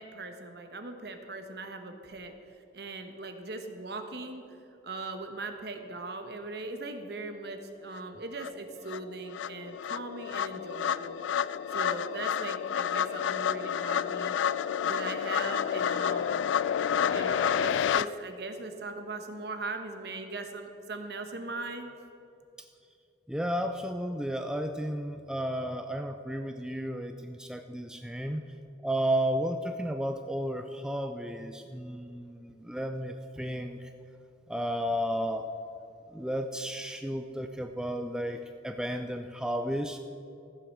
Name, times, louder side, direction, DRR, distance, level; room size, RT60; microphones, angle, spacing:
voice 1, 0.0-2.3 2.7-4.4 4.8-11.2 11.7-14.4 14.8-16.7 17.1-21.9, right 3 dB, 60° right, 6 dB, 1.1 m, -39 dB
sound 1, 8.0-8.1 8.4-18.1, left 8 dB, 80° left, 0.3 m, -30 dB
voice 2, 23.3-28.4 28.8-33.9 34.5-35.5 36.1-40.0, equal, 5° right, 6 dB, 0.4 m, -33 dB
14.0 x 7.7 x 6.5 m, 2.6 s
head